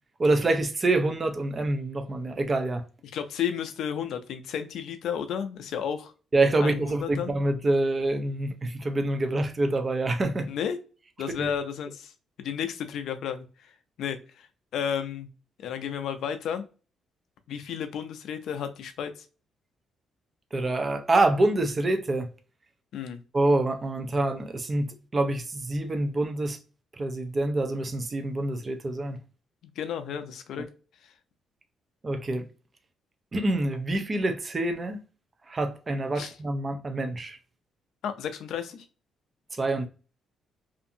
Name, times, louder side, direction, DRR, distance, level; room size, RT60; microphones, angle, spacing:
voice 1, 0.2-2.8 6.3-10.5 11.4-11.5 20.5-22.3 23.3-26.6 27.0-29.2 32.0-32.5 33.3-35.0 35.5-37.4 39.5-39.9, right 2 dB, 30° right, 0.5 m, -26 dB
voice 2, 3.1-6.1 6.6-7.3 10.5-10.8 11.2-12.1 12.4-13.7 14.0-14.5 14.7-15.3 15.6-16.6 17.5-19.1 22.9-23.2 29.6-30.7 36.2-36.3 38.0-38.8, left 8 dB, 75° left, 0.4 m, -32 dB
2.6 x 2.5 x 2.6 m
cardioid pair, 90°, 0 cm